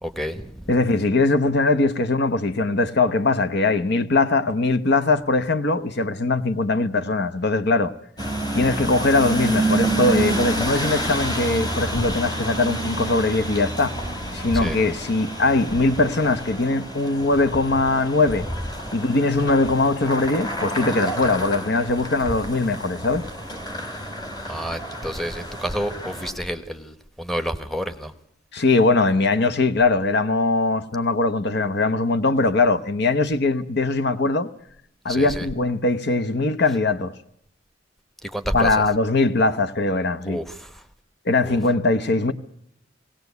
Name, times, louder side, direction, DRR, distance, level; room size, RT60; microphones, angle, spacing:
voice 1, 0.0-0.7 14.5-14.8 24.5-28.1 35.1-35.5 38.2-38.8 40.3-40.8 41.4-41.6, equal, ahead, 1.1 m, -30 dB
voice 2, 0.7-7.9 8.5-13.9 14.3-18.5 18.9-23.2 28.5-34.5 35.0-37.1 38.5-40.4 41.3-42.3, left 3 dB, 60° left, 0.9 m, -21 dB
sound 1, 8.2-26.3, right 1 dB, 25° left, 2.8 m, -28 dB
19.5 x 18.0 x 8.2 m
head